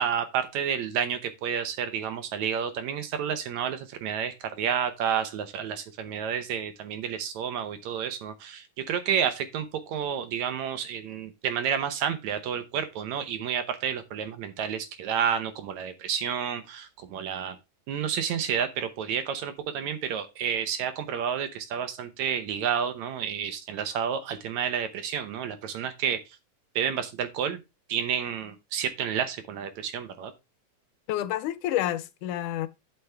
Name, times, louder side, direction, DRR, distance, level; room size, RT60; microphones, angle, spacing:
voice 1, 0.0-17.6 17.9-26.2 26.8-27.6 27.9-30.3, right 8 dB, 70° right, 2.0 m, -30 dB
voice 2, 31.1-32.7, left 13 dB, 75° left, 2.1 m, -29 dB
11.0 x 5.7 x 3.4 m
omnidirectional pair, 3.7 m